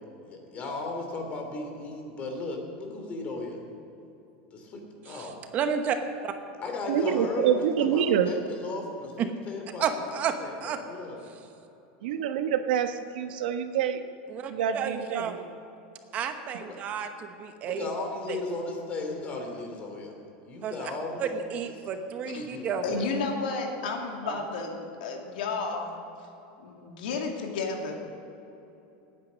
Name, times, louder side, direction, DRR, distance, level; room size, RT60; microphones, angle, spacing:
voice 1, 0.2-3.6 4.5-5.3 6.6-7.6 7.9-10.5 10.9-11.2 12.0-12.2 16.6-16.8 17.6-20.1 20.4-21.3 21.6-21.7 22.2-23.0, left 3 dB, 30° left, 2 dB, 2.9 m, -36 dB
voice 2, 5.1-6.0 6.2-6.3 9.2-9.3 9.8-10.3 10.6-10.8 11.3-11.4 14.3-15.5 16.1-17.9 18.3-18.4 20.6-20.9 21.2-22.8 24.2-24.4, right 7 dB, 30° right, 7 dB, 1.0 m, -32 dB
voice 3, 6.9-8.3 12.0-14.0 14.5-15.2, right 8 dB, 85° right, 8 dB, 1.1 m, -26 dB
voice 4, 22.8-26.0 26.6-27.9, left 4 dB, 85° left, 2 dB, 2.5 m, -32 dB
18.0 x 9.6 x 6.3 m, 3.0 s
supercardioid pair, 160°, 5 cm